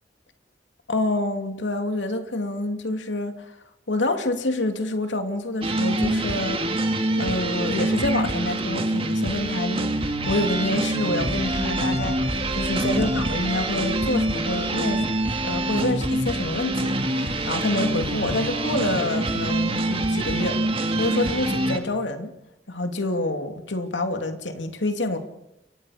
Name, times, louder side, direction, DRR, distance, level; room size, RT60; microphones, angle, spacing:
voice 1, 0.9-3.5 3.9-6.7 7.2-15.1 15.4-22.3 22.7-25.2, left 2 dB, 80° left, 6 dB, 2.6 m, -27 dB
sound 1, 5.6-21.8, right 1 dB, 30° right, 2.1 m, -25 dB
sound 2, 11.2-18.7, equal, 15° right, 6.8 m, -39 dB
29.5 x 24.5 x 5.0 m, 0.82 s
head